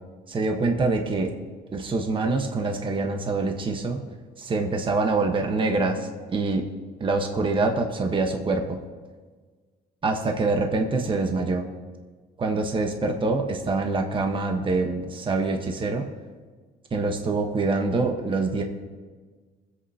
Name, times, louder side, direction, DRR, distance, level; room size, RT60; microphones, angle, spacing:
voice 1, 0.3-1.3 1.7-4.0 4.4-6.6 7.0-8.8 10.0-11.7 12.4-16.1 16.9-18.6, right 3 dB, 30° right, 3 dB, 1.2 m, -25 dB
24.0 x 8.1 x 2.8 m, 1.4 s
cardioid pair, 110°, 17 cm